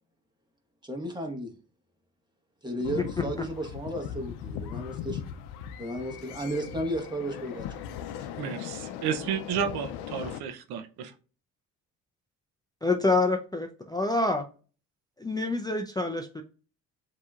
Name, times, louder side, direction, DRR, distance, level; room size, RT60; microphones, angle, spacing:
voice 1, 0.8-1.5 2.6-5.2 5.8-7.7 8.0-8.3, right 1 dB, 10° right, 3 dB, 1.4 m, -34 dB
sound 1, 2.8-10.4, left 9 dB, 85° left, 0.6 m, -38 dB
voice 2, 8.4-11.1, right 7 dB, 75° right, 7 dB, 0.7 m, -32 dB
voice 3, 12.8-14.5 15.2-16.4, left 2 dB, 10° left, 3 dB, 0.5 m, -27 dB
7.2 x 2.9 x 2.4 m, 0.38 s
supercardioid pair, 75°, 38 cm